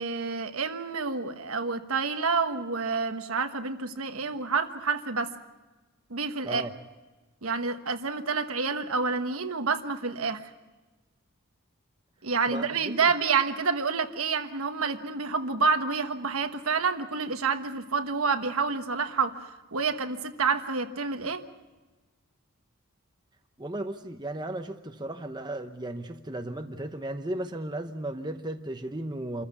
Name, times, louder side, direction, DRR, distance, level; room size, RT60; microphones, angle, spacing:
voice 1, 0.0-5.3 6.1-6.6 7.4-10.4 12.2-19.4 19.7-21.4, right 4 dB, 70° right, 1.3 m, -28 dB
voice 2, 12.5-12.9 23.6-29.5, right 1 dB, 20° right, 0.8 m, -35 dB
27.0 x 14.5 x 8.2 m
head